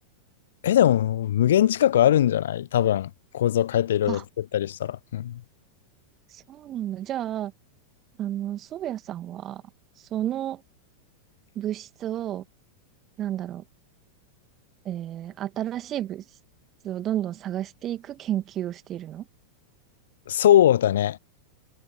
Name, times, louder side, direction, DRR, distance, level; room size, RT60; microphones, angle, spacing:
voice 1, 0.6-4.2 4.5-5.4 20.3-21.2, left 11 dB, 60° left, 0.8 m, -21 dB
voice 2, 6.3-7.5 8.2-9.6 10.0-10.6 11.5-12.4 13.2-13.6 14.8-16.2 16.8-19.3, right 12 dB, 30° right, 2.4 m, -31 dB
figure-of-eight pair, 90°, 0 cm